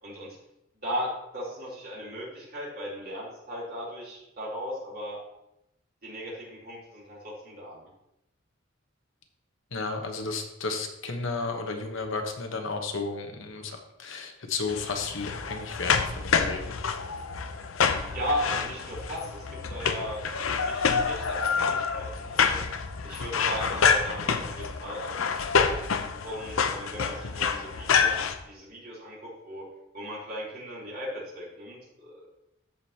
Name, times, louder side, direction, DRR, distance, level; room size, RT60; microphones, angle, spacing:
voice 1, 0.0-0.4 0.8-5.2 6.0-7.9 18.0-22.6 23.0-25.5 26.2-29.6 29.9-32.3, equal, 50° right, -5 dB, 3.4 m, -37 dB
voice 2, 9.7-16.8, left 3 dB, 70° left, 4 dB, 1.1 m, -33 dB
sound 1, 14.7-28.4, left 6 dB, 90° left, 0.7 m, -27 dB
13.5 x 5.1 x 2.9 m, 0.86 s
head